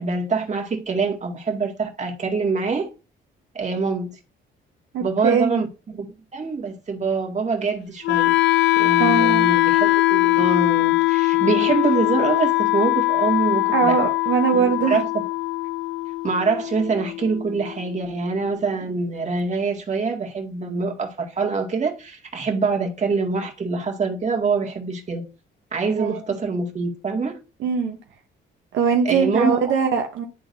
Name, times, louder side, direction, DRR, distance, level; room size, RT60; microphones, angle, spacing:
voice 1, 0.0-2.9 3.5-4.1 5.0-8.3 8.8-14.0 14.5-15.1 16.2-25.2 25.7-27.4 29.0-29.7, right 4 dB, 35° right, 1.9 m, -25 dB
voice 2, 4.9-5.6 9.0-9.5 13.7-15.1 26.0-26.2 27.6-28.0 28.7-30.3, right 6 dB, 75° right, 0.9 m, -21 dB
Wind instrument woodwind instrument, 8.0-18.0, left 20 dB, 70° left, 0.4 m, -21 dB
11.0 x 3.9 x 2.6 m
cardioid pair, 90°, 20 cm